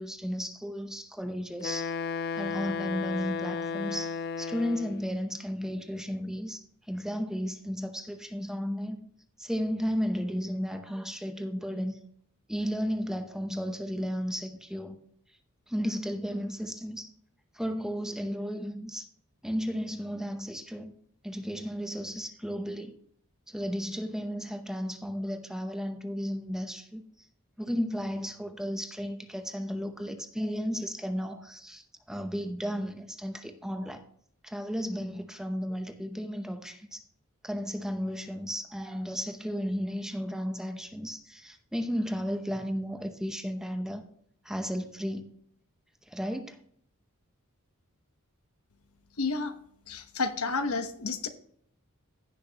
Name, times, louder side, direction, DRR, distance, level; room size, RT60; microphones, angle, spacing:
voice 1, 0.0-2.0 2.4-9.0 9.4-12.0 12.5-15.0 15.7-17.1 17.5-19.1 19.4-20.9 21.2-23.0 23.5-27.0 27.6-34.0 34.4-37.0 37.4-44.0 44.4-45.3 46.1-46.6, equal, 5° right, 0.8 m, -34 dB
Wind instrument woodwind instrument, 1.6-5.1, left 5 dB, 50° left, 0.3 m, -34 dB
voice 2, 49.2-49.5 49.9-51.3, left 4 dB, 85° left, 1.1 m, -30 dB
16.0 x 6.3 x 2.9 m
head